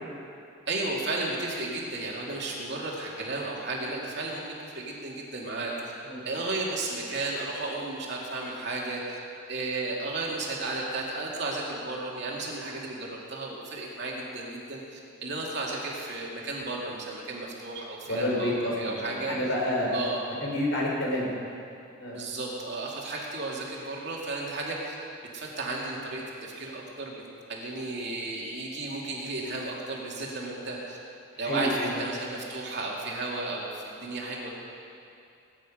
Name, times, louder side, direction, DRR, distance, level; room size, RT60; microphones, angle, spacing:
voice 1, 0.7-5.7 6.2-9.2 9.5-19.4 19.9-20.2 22.1-25.0 25.3-27.2 27.5-31.0 31.4-34.5, right 2 dB, 55° right, -3 dB, 2.6 m, -33 dB
voice 2, 18.1-19.9 20.4-21.3 22.0-22.2 31.5-31.9, left 1 dB, 65° left, -3 dB, 3.9 m, -29 dB
20.0 x 10.0 x 5.1 m, 2.5 s
head